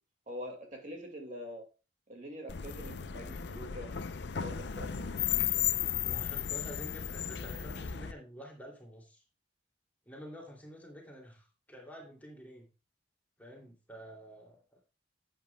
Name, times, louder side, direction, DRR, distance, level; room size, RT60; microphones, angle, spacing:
voice 1, 0.3-1.6 2.1-4.0 4.3-5.4, equal, 40° right, 2 dB, 2.0 m, -45 dB
sound 1, 2.5-8.1, left 9 dB, 60° left, 0.5 m, -34 dB
voice 2, 6.0-9.2 10.1-12.7 13.4-14.8, equal, 10° left, -1 dB, 2.7 m, -49 dB
11.0 x 8.8 x 2.3 m, 0.31 s
head